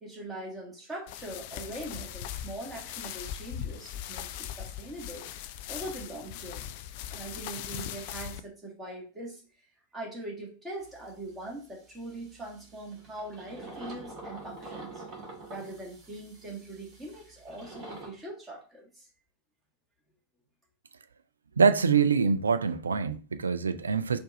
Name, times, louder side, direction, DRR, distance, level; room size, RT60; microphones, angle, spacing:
voice 1, 0.0-4.3 4.6-5.3 5.7-6.7 7.1-9.4 9.9-15.0 15.5-19.1, right 1 dB, 10° right, 1.6 m, -42 dB
sound 1, 1.1-8.4, left 10 dB, 45° left, 0.3 m, -40 dB
sound 2, 10.8-11.6 12.0-18.1, right 2 dB, 25° right, 1.8 m, -46 dB
voice 2, 21.6-24.2, right 5 dB, 75° right, 0.3 m, -24 dB
4.5 x 2.5 x 4.0 m
figure-of-eight pair, 90°, 0 cm